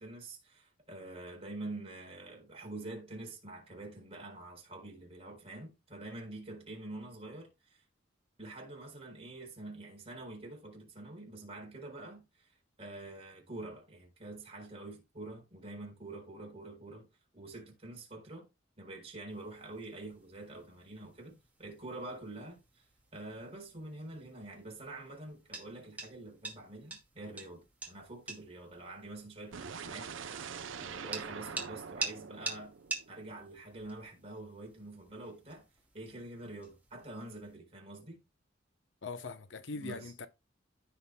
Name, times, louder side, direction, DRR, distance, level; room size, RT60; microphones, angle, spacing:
voice 1, 0.0-7.8 8.4-17.1 17.3-18.5 18.8-22.9 23.1-32.8 33.1-35.7 35.9-38.2 39.7-40.1, right 2 dB, 30° right, 4.0 m, -46 dB
sound 1, 19.3-37.6, right 3 dB, 10° right, 2.2 m, -47 dB
sound 2, 29.5-33.5, right 6 dB, 85° right, 0.7 m, -44 dB
voice 2, 39.0-40.3, left 3 dB, 70° left, 0.8 m, -41 dB
15.5 x 5.7 x 2.2 m
head